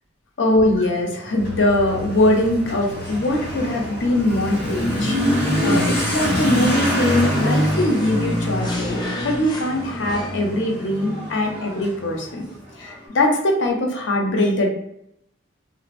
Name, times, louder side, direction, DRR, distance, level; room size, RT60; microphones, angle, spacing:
voice 1, 0.4-5.2 5.6-12.5 12.8-14.7, left 1 dB, 75° left, 2 dB, 0.5 m, -21 dB
Motorcycle / Accelerating revving vroom, 0.6-12.9, equal, 60° left, 1.2 m, -25 dB
sound 1, 1.4-6.7, equal, 75° right, 0.4 m, -36 dB
sound 2, 6.1-10.6, left 1 dB, 20° left, 0.4 m, -37 dB
2.7 x 2.0 x 2.5 m, 0.77 s
head